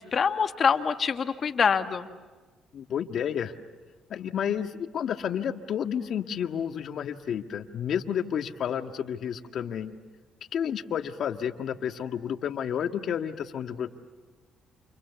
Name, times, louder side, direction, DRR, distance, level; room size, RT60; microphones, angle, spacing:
voice 1, 0.0-2.1, left 6 dB, 50° left, 8 dB, 1.9 m, -25 dB
voice 2, 2.7-3.5 4.1-9.9 10.5-13.9, left 8 dB, 65° left, 7 dB, 1.8 m, -31 dB
30.0 x 28.0 x 7.1 m, 1.3 s
supercardioid pair, 75°, 0 cm